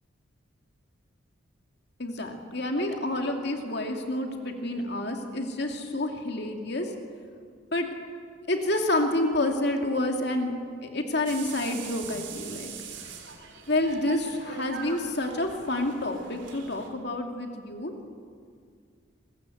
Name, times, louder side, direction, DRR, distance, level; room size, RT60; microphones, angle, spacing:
voice 1, 2.0-6.9 7.7-7.9 8.5-10.5 10.8-12.7 13.1-13.2 13.7-17.9, left 1 dB, 55° left, 3 dB, 2.5 m, -29 dB
sound 1, 11.3-16.9, right 6 dB, 65° right, 3.7 m, -42 dB
26.0 x 21.0 x 7.9 m, 2.1 s
head